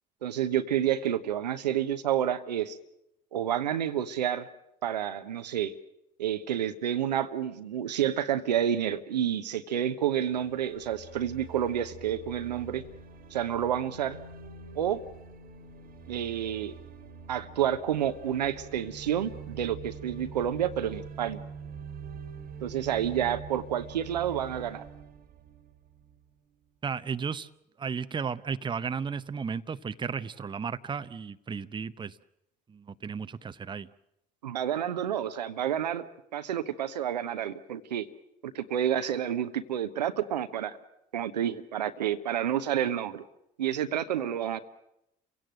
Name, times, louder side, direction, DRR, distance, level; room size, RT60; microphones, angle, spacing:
voice 1, 0.2-2.8 3.3-4.5 4.8-5.7 6.2-12.8 13.3-14.2 14.8-15.0 16.1-16.7 17.3-21.4 22.6-24.8 34.4-38.0 38.4-40.8 41.1-43.2 43.6-44.6, right 10 dB, 80° right, 10 dB, 1.0 m, -29 dB
sound 1, 10.2-26.3, right 6 dB, 45° right, 1.8 m, -45 dB
voice 2, 26.8-27.5 27.8-32.2 32.7-33.9, right 6 dB, 20° right, 13 dB, 0.8 m, -34 dB
29.5 x 16.5 x 7.8 m, 0.83 s
figure-of-eight pair, 60°, 21 cm